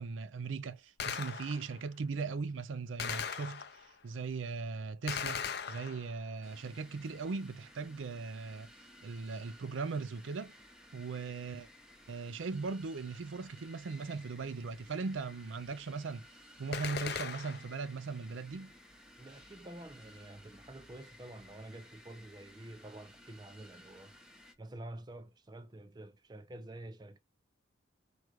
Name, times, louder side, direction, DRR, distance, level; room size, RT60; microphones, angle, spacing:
voice 1, 0.0-8.7 9.0-10.5 10.9-11.7 12.1-16.3 16.6-18.7, right 4 dB, 80° right, 0.5 m, -39 dB
Gunshot gunfire, 1.0-1.8 3.0-4.0 5.1-6.3 16.7-17.8, left 7 dB, 55° left, 0.5 m, -39 dB
sound 1, 6.4-24.5, left 1 dB, 5° right, 0.8 m, -57 dB
voice 2, 19.2-24.1 24.6-27.2, right 1 dB, 20° right, 0.4 m, -49 dB
4.8 x 2.5 x 4.5 m
head